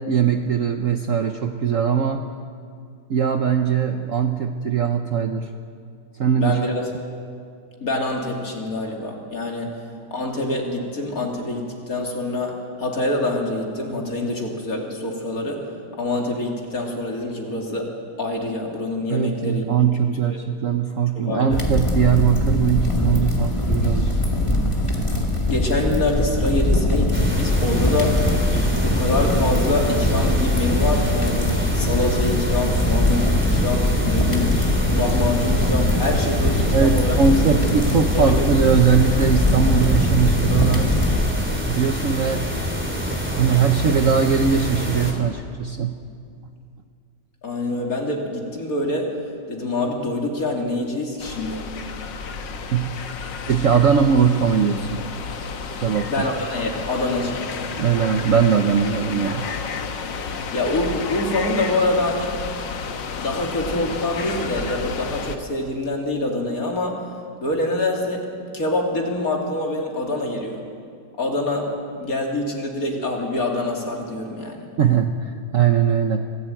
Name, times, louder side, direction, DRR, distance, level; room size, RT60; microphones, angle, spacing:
voice 1, 0.1-2.2 3.1-5.5 6.2-6.6 19.1-24.1 36.7-41.0 41.7-42.5 43.0-46.0 52.7-52.9 53.5-55.0 55.8-56.3 57.8-59.5 74.8-76.2, right 7 dB, 55° right, 5 dB, 1.2 m, -20 dB
voice 2, 6.4-6.9 7.8-9.8 10.1-15.7 16.0-19.6 20.2-20.4 21.1-21.7 25.5-28.2 28.8-34.6 34.9-37.2 37.5-37.6 38.1-38.4 47.4-49.1 49.5-51.7 56.1-57.5 60.5-62.3 63.1-67.0 67.4-70.6 71.2-74.7, left 2 dB, 50° left, 0 dB, 3.4 m, -25 dB
sound 1, 21.5-41.3, left 1 dB, 15° left, 2.1 m, -21 dB
sound 2, 27.1-45.1, equal, 5° right, 3.0 m, -27 dB
sound 3, 51.2-65.4, left 5 dB, 85° left, 2.0 m, -31 dB
25.0 x 16.0 x 9.0 m, 2.3 s
omnidirectional pair, 1.9 m